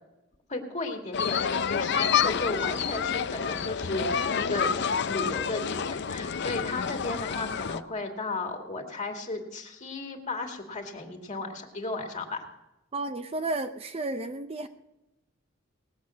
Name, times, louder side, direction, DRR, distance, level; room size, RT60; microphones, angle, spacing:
voice 1, 0.5-4.8 5.1-12.5, left 2 dB, 35° left, 3 dB, 2.2 m, -34 dB
sound 1, 1.1-7.8, left 7 dB, 55° left, 0.5 m, -28 dB
voice 2, 12.9-14.7, right 2 dB, 30° right, 8 dB, 0.6 m, -32 dB
19.5 x 8.4 x 6.2 m, 0.95 s
head